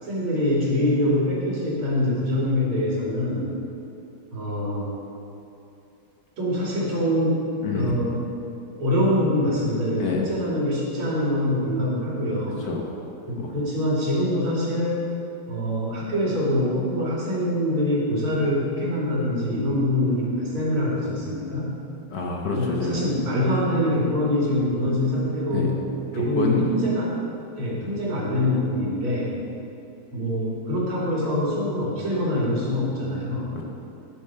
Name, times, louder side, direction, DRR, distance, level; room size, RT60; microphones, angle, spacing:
voice 1, 0.0-3.5 4.3-4.9 6.4-7.4 7.7-8.2 8.8-12.6 13.3-15.1 15.5-21.7 22.5-25.8 26.2-27.1 27.6-29.3 30.1-33.6, left 1 dB, 75° right, -5 dB, 3.3 m, -24 dB
voice 2, 7.6-8.0 10.0-10.2 12.6-12.9 13.4-13.5 22.1-23.0 25.5-25.7 26.1-26.7 27.7-27.9 33.5-33.6, left 3 dB, 55° left, -1 dB, 1.7 m, -28 dB
10.5 x 7.3 x 5.5 m, 2.8 s
omnidirectional pair, 2.4 m